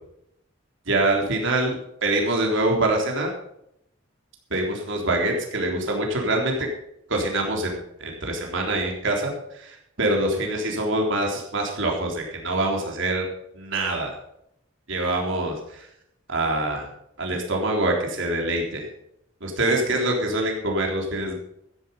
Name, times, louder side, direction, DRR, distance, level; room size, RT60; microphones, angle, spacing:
voice 1, 0.9-1.8 2.0-3.3 4.5-6.7 7.1-13.3 13.5-14.1 14.9-15.9 16.3-16.9 17.2-18.9 19.4-21.3, right 2 dB, 70° right, 1 dB, 3.7 m, -25 dB
13.5 x 10.5 x 5.5 m, 0.77 s
head